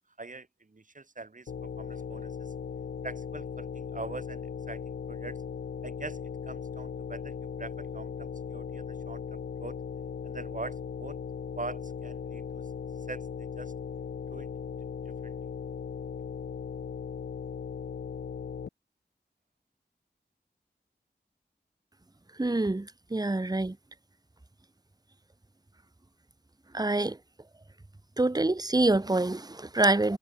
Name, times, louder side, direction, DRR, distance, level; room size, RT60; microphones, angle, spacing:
voice 1, 0.2-2.5 3.0-5.4 5.8-6.2 6.5-9.2 9.6-9.8 10.2-11.2 11.6-13.7 14.3-14.5 15.1-15.4, right 3 dB, 45° right, 1.1 m, -43 dB
sound 1, 1.5-18.7, left 6 dB, 65° left, 0.4 m, -38 dB
voice 2, 22.4-23.8 26.7-27.2 28.2-30.2, right 2 dB, 20° right, 0.8 m, -26 dB
wide cardioid pair, 45°, 19 cm